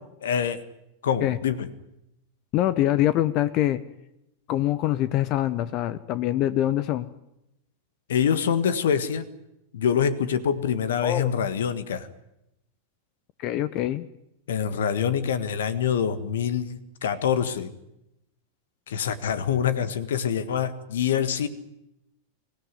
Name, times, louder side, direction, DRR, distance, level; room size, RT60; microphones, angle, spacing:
voice 1, 0.2-0.6 1.0-1.7 8.1-9.3 9.7-12.1 14.5-17.7 18.9-21.5, left 8 dB, 60° left, 14 dB, 1.6 m, -25 dB
voice 2, 2.5-3.8 4.5-7.1 11.0-11.3 13.4-14.1, left 13 dB, 40° left, 16 dB, 0.9 m, -24 dB
24.5 x 17.5 x 9.8 m, 0.85 s
figure-of-eight pair, 90°, 0 cm